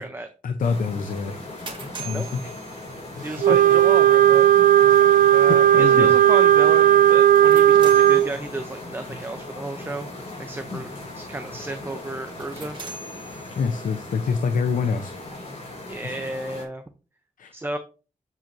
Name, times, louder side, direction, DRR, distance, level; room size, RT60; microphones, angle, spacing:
voice 1, 0.4-1.5 2.0-2.5 3.5-3.8 5.7-6.1 10.7-10.8 13.6-15.1 16.0-16.1 17.4-17.5, left 5 dB, 85° left, 7 dB, 0.7 m, -26 dB
sound 1, 0.6-16.6, left 2 dB, 50° left, 4.6 m, -38 dB
sound 2, 1.2-3.4 7.2-8.9 12.2-14.0, right 4 dB, 35° right, 1.9 m, -42 dB
voice 2, 3.2-4.4 5.3-12.8 15.9-16.8 17.5-17.8, right 2 dB, 15° right, 7 dB, 0.7 m, -33 dB
Wind instrument woodwind instrument, 3.4-8.3, right 11 dB, 80° right, 0.4 m, -15 dB
7.6 x 7.4 x 2.7 m, 0.33 s
wide cardioid pair, 110°, 14 cm